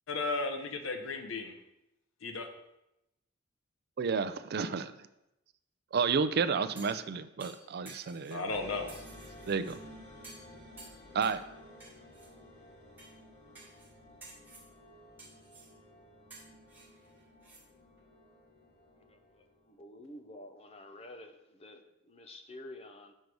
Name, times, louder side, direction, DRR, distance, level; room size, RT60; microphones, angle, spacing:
voice 1, 0.1-1.5 2.2-2.5 8.3-8.9, left 3 dB, 80° left, 6 dB, 0.8 m, -34 dB
voice 2, 4.0-4.9 5.9-8.5 9.5-9.8 11.1-11.4, right 5 dB, 50° right, 12 dB, 0.4 m, -31 dB
sound 1, 6.8-7.1 7.4-8.4 8.9-9.8 10.2-10.5 10.8-11.4 11.8-12.3 13.0-13.1 13.6-13.9 14.2-14.7 15.2-15.7 16.3-17.6 18.0-18.1, right 2 dB, 10° right, 1.7 m, -53 dB
sound 2, 8.5-19.7, left 1 dB, 60° left, 2.6 m, -54 dB
voice 3, 19.7-23.1, left 1 dB, 30° left, 7 dB, 0.6 m, -49 dB
6.4 x 4.6 x 5.3 m, 0.87 s
head